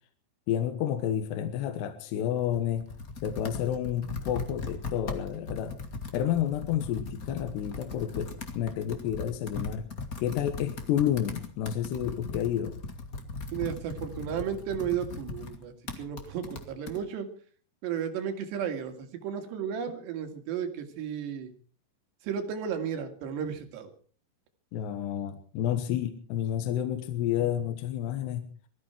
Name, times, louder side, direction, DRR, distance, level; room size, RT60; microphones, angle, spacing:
voice 1, 0.5-2.9 3.2-5.8 6.1-9.9 10.2-12.8 24.7-28.5, left 10 dB, 80° left, 8 dB, 3.3 m, -30 dB
Computer keyboard, 2.4-17.0, left 3 dB, 50° left, 1.0 m, -39 dB
voice 2, 13.5-17.3 17.8-21.5 22.2-23.9, right 8 dB, 85° right, 7 dB, 4.2 m, -34 dB
21.5 x 14.5 x 4.5 m, 0.42 s
omnidirectional pair, 4.8 m